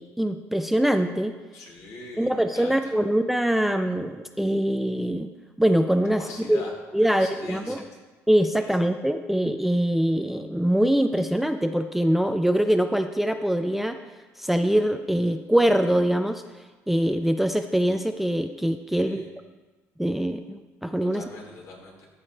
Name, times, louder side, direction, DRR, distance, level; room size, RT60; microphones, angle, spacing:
voice 1, 0.0-1.4 2.2-5.3 5.6-6.2 6.5-6.6 6.9-7.8 8.3-14.0 14.4-16.4 16.9-19.2 20.0-21.2, right 1 dB, 5° right, 8 dB, 0.4 m, -23 dB
voice 2, 1.5-2.9 6.2-6.7 7.0-7.8 8.6-8.7 18.9-19.3 21.0-22.1, left 3 dB, 60° left, -1 dB, 2.2 m, -42 dB
13.5 x 5.0 x 4.2 m, 1.3 s
cardioid pair, 105°, 6 cm